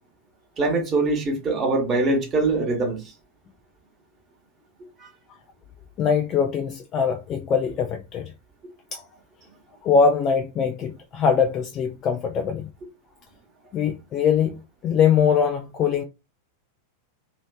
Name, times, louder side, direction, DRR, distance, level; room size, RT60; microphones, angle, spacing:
voice 1, 0.6-3.1 5.0-5.1, right 3 dB, 25° right, 1.1 m, -23 dB
voice 2, 6.0-8.3 8.9-9.0 9.8-12.7 13.7-16.0, left 6 dB, 30° left, 0.4 m, -22 dB
3.0 x 2.8 x 2.2 m
figure-of-eight pair, 90°, 0 cm